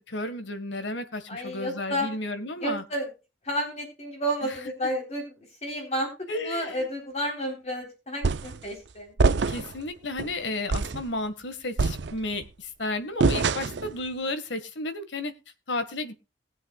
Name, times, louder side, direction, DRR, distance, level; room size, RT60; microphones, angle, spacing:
voice 1, 0.1-2.8 4.4-4.5 6.3-6.9 9.3-15.3 15.7-16.1, left 2 dB, 80° left, 10 dB, 1.6 m, -33 dB
voice 2, 1.3-2.1 2.6-3.1 3.4-5.2 5.6-9.1, equal, 35° left, 2 dB, 3.7 m, -31 dB
sound 1, 8.2-8.6 9.2-9.8 10.2-10.3 10.7-11.1 11.8-12.5 13.2-13.9, right 4 dB, 70° right, 0.6 m, -24 dB
21.0 x 8.0 x 2.3 m, 0.30 s
head